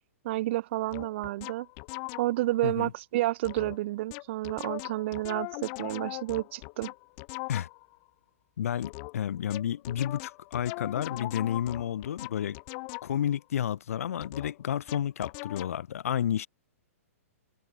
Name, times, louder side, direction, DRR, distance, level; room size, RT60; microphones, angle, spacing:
voice 1, 0.2-1.7 2.2-6.9, right 17 dB, 50° right, 1.3 m, -30 dB
sound 1, 0.9-2.5 3.4-3.8 4.1-8.0 8.8-13.3 14.2-15.8, left 40 dB or more, 40° left, 4.7 m, -40 dB
voice 2, 8.6-12.6 13.0-16.5, left 9 dB, 70° left, 1.2 m, -31 dB
open air
hypercardioid pair, 135°, 8 cm